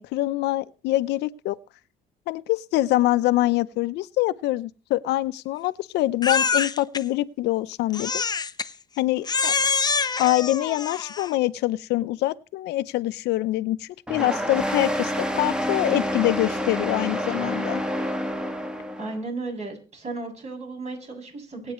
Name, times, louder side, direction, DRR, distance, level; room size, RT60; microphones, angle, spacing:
voice 1, 0.0-1.6 2.3-8.2 9.0-9.5 10.2-17.8, left 16 dB, 85° left, 14 dB, 0.7 m, -25 dB
Crying sobbing, 6.2-7.0 7.9-8.7 9.2-11.4, left 5 dB, 25° left, 0.7 m, -25 dB
sound 1, 14.1-19.2, equal, 5° right, 1.5 m, -28 dB
voice 2, 19.0-21.7, right 3 dB, 40° right, 2 dB, 7.3 m, -34 dB
24.0 x 9.2 x 3.1 m, 0.34 s
cardioid pair, 110°, 17 cm